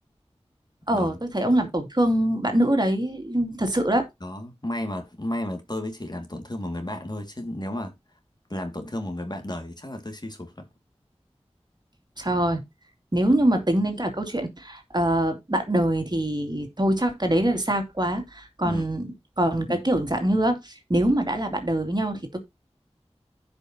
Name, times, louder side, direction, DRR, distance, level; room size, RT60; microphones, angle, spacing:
voice 1, 0.9-4.1 12.2-12.6 13.1-19.1 19.4-22.4, right 1 dB, 40° right, 2.5 m, -24 dB
voice 2, 4.2-7.9 8.5-10.7 18.6-18.8 19.7-19.8, left 1 dB, 40° left, 2.1 m, -33 dB
15.5 x 5.3 x 2.8 m
wide cardioid pair, 50°, 11 cm